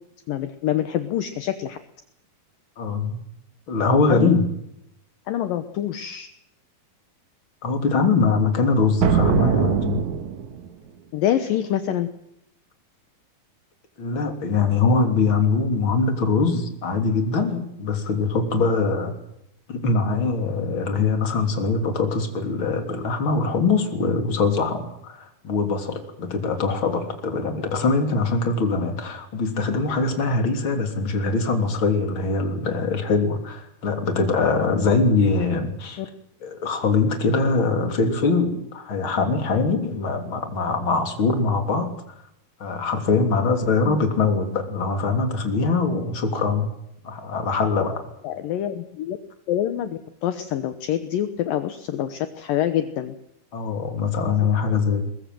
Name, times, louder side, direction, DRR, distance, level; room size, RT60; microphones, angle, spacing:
voice 1, 0.3-1.8 4.1-4.4 5.3-6.3 11.1-12.1 36.0-36.1 43.8-44.0 48.2-49.2 49.5-53.1, left 11 dB, 70° left, 10 dB, 2.6 m, -26 dB
voice 2, 2.8-3.2 3.7-4.4 7.6-10.0 14.0-19.1 19.7-36.0 36.4-41.9 42.6-46.7 47.0-48.1 53.5-55.1, left 4 dB, 35° left, 6 dB, 3.6 m, -22 dB
sound 1, 9.0-10.7, right 8 dB, 60° right, 2.6 m, -22 dB
22.0 x 22.0 x 7.7 m, 0.78 s
omnidirectional pair, 4.4 m